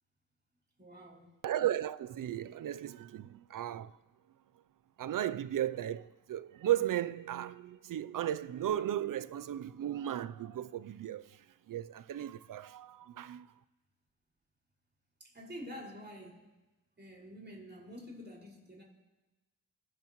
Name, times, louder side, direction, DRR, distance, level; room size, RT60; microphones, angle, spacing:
voice 1, 0.8-1.3 15.2-16.5 17.0-18.8, equal, 30° right, 5.4 m, -48 dB
voice 2, 1.4-3.9 5.0-11.4 11.7-13.5, right 11 dB, 60° right, 0.5 m, -35 dB
25.0 x 12.5 x 3.1 m
cardioid pair, 65°, 36 cm